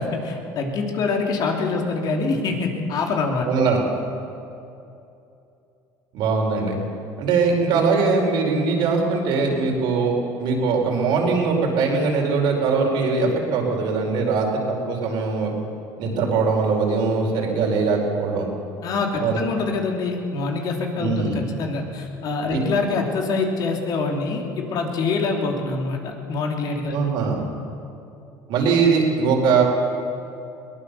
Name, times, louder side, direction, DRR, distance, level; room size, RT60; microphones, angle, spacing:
voice 1, 0.2-3.5 18.8-27.0, left 4 dB, 55° left, 2 dB, 3.2 m, -25 dB
voice 2, 3.4-3.8 6.1-6.8 7.2-10.1 10.4-15.5 16.0-18.5 19.2-19.4 21.0-21.4 22.5-22.6 26.9-27.5 28.5-29.6, right 4 dB, 70° right, 0 dB, 4.9 m, -21 dB
21.5 x 18.5 x 7.0 m, 2.7 s
supercardioid pair, 110°, 8 cm